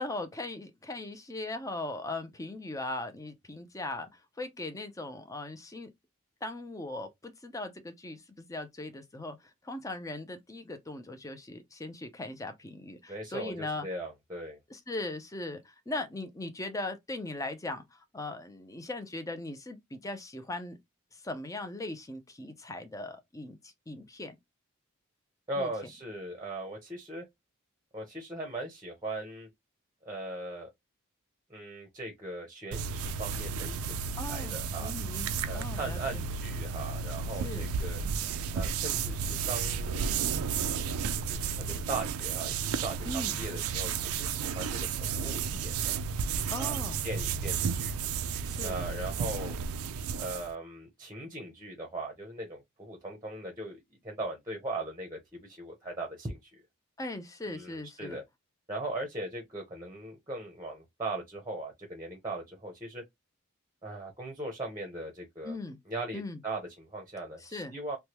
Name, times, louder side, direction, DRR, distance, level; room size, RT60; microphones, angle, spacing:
voice 1, 0.0-5.9 6.4-9.4 9.6-13.9 14.7-20.8 21.1-24.4 25.6-25.7 34.2-36.3 37.4-37.7 43.1-43.4 46.5-47.1 48.5-48.8 57.0-58.2 65.4-65.8 66.1-66.4 67.4-67.7, left 2 dB, 15° left, 0.5 m, -39 dB
voice 2, 13.1-14.6 25.5-27.2 27.9-29.5 30.0-30.7 31.5-34.9 35.5-38.0 38.5-40.1 41.3-46.0 46.6-46.7 47.0-47.9 48.6-49.6 50.2-56.6 57.5-58.2 58.7-63.0 63.8-65.6 65.9-68.0, right 2 dB, 20° right, 0.8 m, -39 dB
sound 1, 32.7-50.5, right 6 dB, 90° right, 0.4 m, -33 dB
3.2 x 2.2 x 2.9 m
head